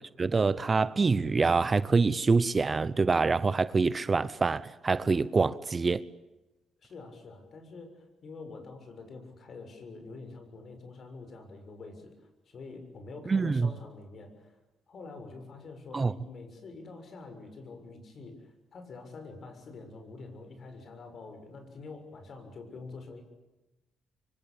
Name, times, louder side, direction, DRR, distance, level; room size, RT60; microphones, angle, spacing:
voice 1, 0.2-6.0 13.3-13.7 15.9-16.1, right 4 dB, 30° right, 0.9 m, -25 dB
voice 2, 6.8-12.1 12.4-14.6 14.9-23.2, left 3 dB, 55° left, 7.0 m, -46 dB
25.5 x 25.0 x 8.7 m
cardioid pair, 90°, 0 cm